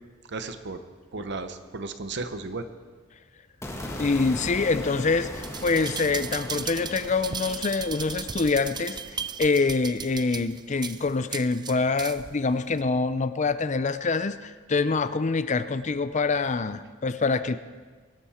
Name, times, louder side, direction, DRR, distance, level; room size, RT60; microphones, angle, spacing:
voice 1, 0.3-0.8 1.1-2.6, right 3 dB, 60° right, 10 dB, 1.0 m, -34 dB
sound 1, 3.6-9.8, left 1 dB, 15° left, 1.6 m, -39 dB
voice 2, 4.0-9.0 9.4-17.6, left 4 dB, 35° left, 13 dB, 0.5 m, -25 dB
sound 2, 5.3-12.3 12.8-12.9, right 6 dB, 20° right, 0.4 m, -36 dB
23.5 x 10.5 x 4.4 m, 1.4 s
head